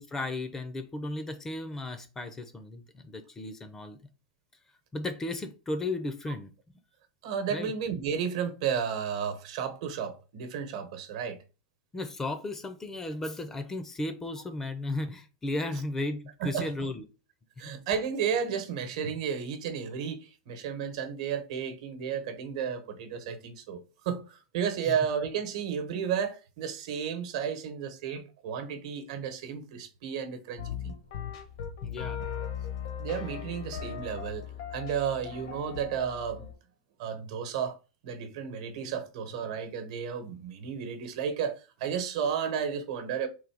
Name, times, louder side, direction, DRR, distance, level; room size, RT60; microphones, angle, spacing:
voice 1, 0.0-4.0 4.9-6.5 7.5-7.7 11.9-17.0 24.9-25.0 31.8-32.2, left 2 dB, 15° left, 0.5 m, -35 dB
voice 2, 7.2-11.4 16.4-16.7 17.6-31.0 33.0-36.5 37.0-37.8 38.0-43.3, right 7 dB, 65° right, 1.0 m, -33 dB
sound 1, 30.6-36.5, left 8 dB, 70° left, 0.9 m, -38 dB
3.8 x 2.7 x 4.7 m
supercardioid pair, 145°, 3 cm